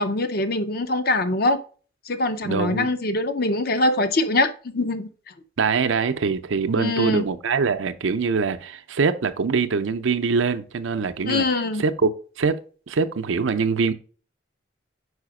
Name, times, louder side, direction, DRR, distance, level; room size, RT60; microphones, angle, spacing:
voice 1, 0.0-1.6 2.1-5.1 6.7-7.2 11.3-11.8, left 2 dB, 50° left, 0.6 m, -23 dB
voice 2, 2.4-2.9 5.6-11.4 11.8-13.9, right 5 dB, 85° right, 0.5 m, -23 dB
4.9 x 4.8 x 4.8 m
head